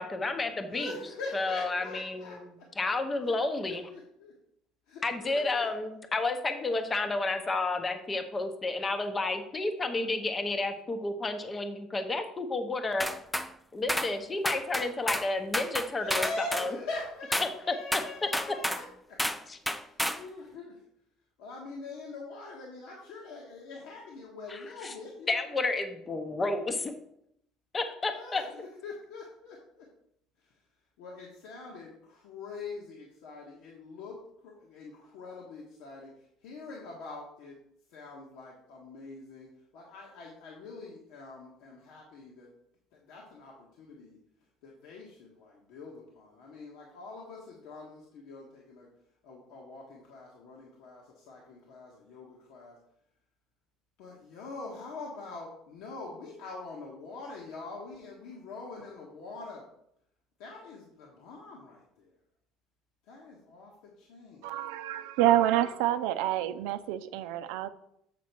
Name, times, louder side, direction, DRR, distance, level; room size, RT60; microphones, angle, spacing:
voice 1, 0.0-0.9 1.3-2.2 2.8-3.9 5.0-13.1 13.7-16.7 17.7-17.8 19.5-19.6 24.5-24.9 25.3-26.9 27.7-28.4, left 3 dB, 20° left, 8 dB, 0.8 m, -31 dB
voice 2, 0.7-2.7 3.2-4.3 4.9-5.7 16.0-19.2 19.7-20.8 21.4-25.5 28.0-29.9 30.4-30.5 31.0-37.6 37.9-39.5 39.7-42.5 42.9-44.2 44.6-48.9 49.2-52.8 54.0-59.7 60.4-62.1 63.1-64.6 65.6-65.7, left 3 dB, 75° left, -2 dB, 1.5 m, -44 dB
sound 1, 13.0-13.5 13.9-14.1 14.4-15.3 15.5-16.7 17.3-17.5 17.9-18.8 19.2-19.4 19.7-20.2, equal, 5° left, 0.4 m, -30 dB
voice 3, 64.4-67.7, right 13 dB, 85° right, 11 dB, 0.5 m, -27 dB
7.5 x 4.2 x 6.0 m, 0.75 s
cardioid pair, 135°, 0 cm